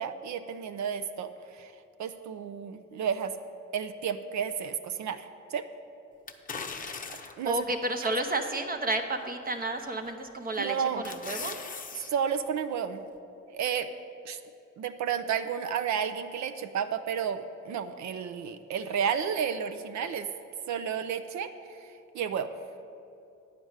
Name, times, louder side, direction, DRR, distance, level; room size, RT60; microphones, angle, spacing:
voice 1, 0.0-1.7 2.0-3.3 3.7-5.6 7.4-7.6 8.0-8.1 10.6-11.0 12.1-13.0 13.5-13.9 14.2-14.4 14.8-17.4 17.7-20.3 20.7-21.5 21.8-21.9 22.1-22.5, right 7 dB, 70° right, 9 dB, 0.6 m, -31 dB
sound 1, 6.3-7.5 8.1-8.2 9.8-10.1 10.5-12.1 12.5-12.6, left 5 dB, 25° left, 0.7 m, -39 dB
voice 2, 7.5-11.6, right 2 dB, 30° right, 5 dB, 0.8 m, -31 dB
9.6 x 5.1 x 8.0 m, 2.6 s
cardioid pair, 90°, 30 cm